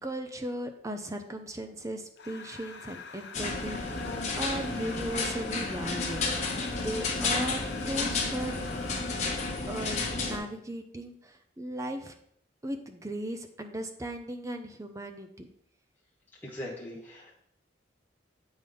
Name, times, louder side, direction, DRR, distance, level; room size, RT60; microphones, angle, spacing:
voice 1, 0.0-7.6 7.9-8.6 9.7-12.2 12.6-15.5, right 1 dB, 15° right, 6 dB, 0.6 m, -37 dB
sound 1, 2.2-9.8, left 5 dB, 60° left, 0.7 m, -45 dB
sound 2, 3.3-10.4, left 3 dB, 35° left, 1.2 m, -32 dB
voice 2, 16.4-17.3, left 1 dB, 10° left, -5 dB, 1.2 m, -40 dB
8.0 x 5.2 x 3.8 m, 0.70 s
head